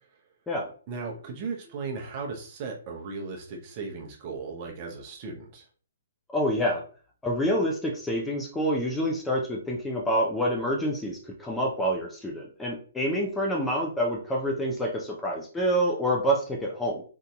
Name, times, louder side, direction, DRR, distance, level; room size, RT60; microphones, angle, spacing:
voice 1, 0.9-5.6, right 4 dB, 40° right, 0 dB, 0.8 m, -36 dB
voice 2, 6.3-6.8 7.2-17.0, equal, 10° left, -1 dB, 0.6 m, -27 dB
3.8 x 2.7 x 2.3 m, 0.42 s
hypercardioid pair, 135°, 0 cm